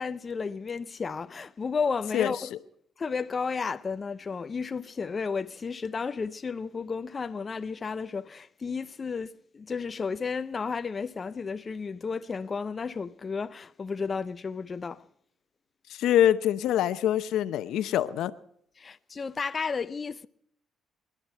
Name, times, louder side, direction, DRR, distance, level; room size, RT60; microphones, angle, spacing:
voice 1, 0.0-2.5 3.0-15.1 18.8-20.3, left 5 dB, 35° left, 0.5 m, -33 dB
voice 2, 15.9-18.3, left 11 dB, 85° left, 0.7 m, -24 dB
25.5 x 11.5 x 4.5 m
cardioid pair, 90°, 0 cm